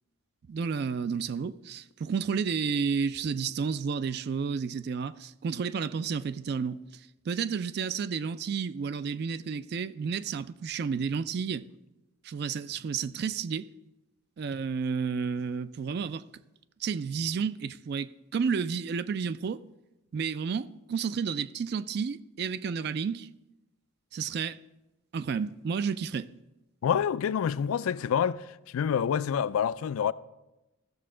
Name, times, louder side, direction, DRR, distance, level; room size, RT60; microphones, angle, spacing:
voice 1, 0.5-6.8 7.3-11.7 12.2-13.7 14.4-16.2 16.8-19.6 20.1-23.3 24.1-24.6 25.1-26.3, right 6 dB, 50° right, 0.3 m, -31 dB
voice 2, 26.8-28.5 28.7-30.1, left 8 dB, 90° left, 0.3 m, -27 dB
15.0 x 6.7 x 3.7 m
head